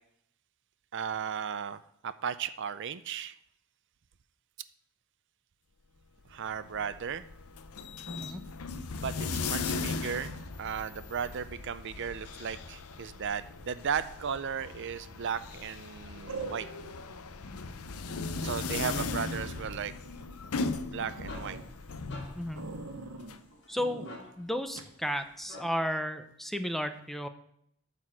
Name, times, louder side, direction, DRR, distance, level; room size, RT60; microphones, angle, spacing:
voice 1, 0.9-3.4 6.3-7.2 8.9-16.7 18.4-19.9 20.9-21.6, right 7 dB, 55° right, 14 dB, 0.5 m, -35 dB
sound 1, 6.3-23.4, left 4 dB, 85° left, 0.7 m, -38 dB
voice 2, 8.1-8.4 22.4-22.7 23.7-24.1 24.4-27.3, equal, ahead, 9 dB, 0.6 m, -33 dB
sound 2, 14.7-15.1 16.3-17.0 17.5-17.6 18.1-18.2 18.4-18.5 18.8-20.8 21.2-21.6 22.6-23.4 23.8-24.2 24.8-24.9, right 3 dB, 80° right, 1.3 m, -42 dB
sound 3, 21.2-26.0, left 2 dB, 55° left, 2.0 m, -51 dB
12.5 x 4.2 x 7.6 m, 0.71 s
head